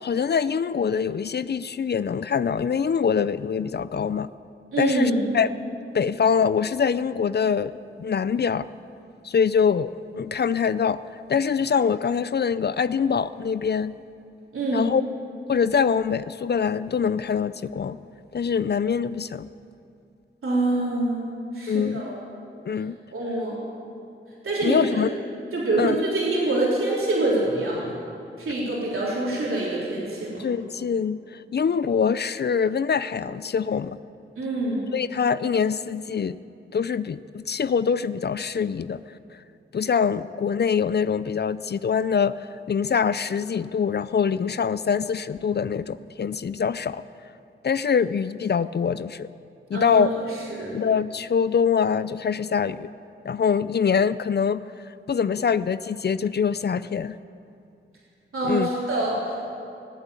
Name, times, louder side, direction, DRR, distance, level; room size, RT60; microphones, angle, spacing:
voice 1, 0.0-4.3 4.8-5.5 5.9-8.7 9.2-11.0 11.3-13.9 14.7-15.0 15.5-18.0 18.3-19.5 21.7-22.0 22.6-23.0 24.6-25.1 25.8-26.0 30.4-34.0 34.9-36.4 36.7-39.0 39.7-47.0 47.6-49.3 49.7-50.1 50.7-52.9 53.2-57.2 58.4-58.7, left 6 dB, 50° left, 15 dB, 0.5 m, -24 dB
voice 2, 4.7-5.3 14.5-14.9 20.4-22.2 23.1-23.6 24.4-24.8 25.5-27.9 28.4-30.4 34.4-34.8 49.7-50.1 50.5-50.8 58.3-59.4, right 2 dB, 80° right, -6 dB, 3.8 m, -25 dB
17.5 x 8.2 x 8.4 m, 2.6 s
cardioid pair, 55°, 21 cm